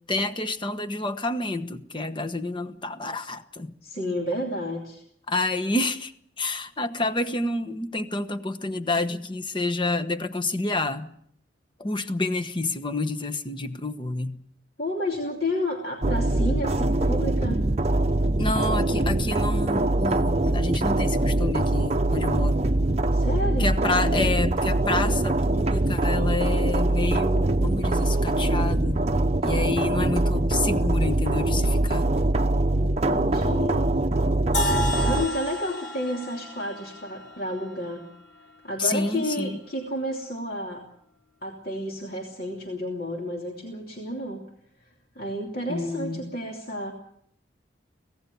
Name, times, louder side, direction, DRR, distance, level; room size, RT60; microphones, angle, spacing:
voice 1, 0.1-3.7 5.3-6.1 6.4-11.1 11.8-14.4 18.4-22.7 23.6-29.0 29.4-32.1 38.8-39.6 45.7-46.3, left 2 dB, 25° left, 10 dB, 1.1 m, -29 dB
voice 2, 3.8-5.0 14.8-17.6 23.1-23.7 29.9-30.1 30.7-30.9 32.8-33.9 35.0-38.0 38.6-40.8 41.4-44.4 45.1-46.9, left 1 dB, 55° left, 0 dB, 2.8 m, -31 dB
sound 1, 16.0-35.3, right 2 dB, 35° right, 0.8 m, -23 dB
sound 2, 34.5-38.5, left 1 dB, 75° left, 4.2 m, -31 dB
24.5 x 17.5 x 7.0 m, 0.68 s
head